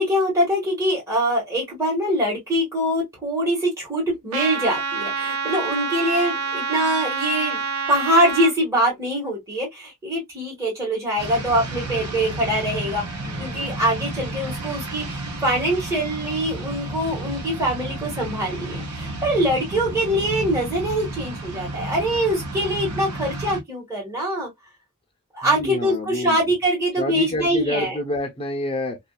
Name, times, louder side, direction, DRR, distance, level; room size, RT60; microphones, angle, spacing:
voice 1, 0.0-7.6 7.9-13.0 13.4-24.5 25.3-28.0, equal, 15° right, 1.5 m, -23 dB
Trumpet, 4.3-8.5, right 5 dB, 70° right, 0.5 m, -27 dB
sound 1, 11.2-23.6, right 2 dB, 90° right, 1.0 m, -32 dB
voice 2, 13.2-13.7 25.4-26.4 27.0-29.0, left 2 dB, 25° left, 0.7 m, -28 dB
2.7 x 2.4 x 2.2 m
head